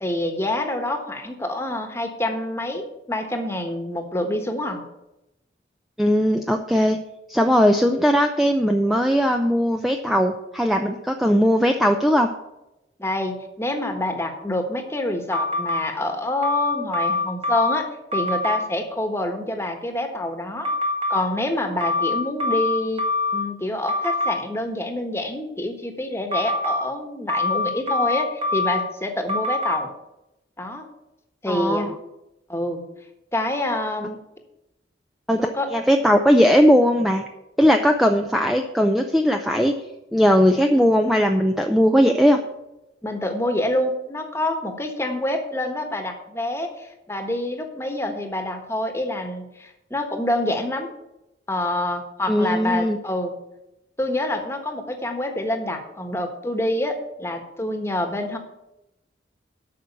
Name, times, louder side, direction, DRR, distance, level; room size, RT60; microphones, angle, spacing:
voice 1, 0.0-4.8 13.0-17.8 18.1-20.7 21.1-23.0 23.3-29.9 30.6-30.9 31.4-31.9 32.5-32.8 33.3-34.2 35.4-35.7 43.0-50.9 51.5-53.4 54.0-58.4, left 1 dB, 15° left, 5 dB, 1.3 m, -27 dB
voice 2, 6.0-7.0 7.3-12.3 31.5-31.9 35.3-35.4 35.7-37.2 37.6-39.7 40.1-42.4 52.3-53.0, equal, ahead, 4 dB, 0.5 m, -18 dB
sound 1, 15.3-15.8 16.4-17.8 18.1-18.6 20.6-21.2 21.8-23.4 23.9-24.3 26.3-26.8 27.3-28.8 29.3-29.7, left 2 dB, 30° right, 1.6 m, -23 dB
8.7 x 6.1 x 8.2 m, 0.91 s
head